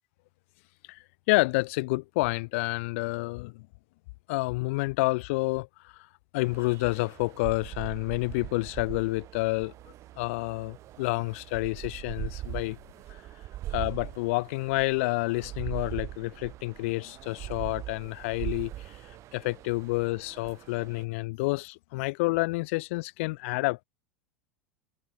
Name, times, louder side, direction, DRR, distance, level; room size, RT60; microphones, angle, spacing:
voice 1, 0.9-3.7 4.3-6.1 6.3-9.7 10.2-12.8 13.7-18.9 19.3-23.8, left 24 dB, 65° left, 0.5 m, -29 dB
sound 1, 6.4-21.0, right 14 dB, 40° right, 1.1 m, -41 dB
hypercardioid pair, 105°, 7 cm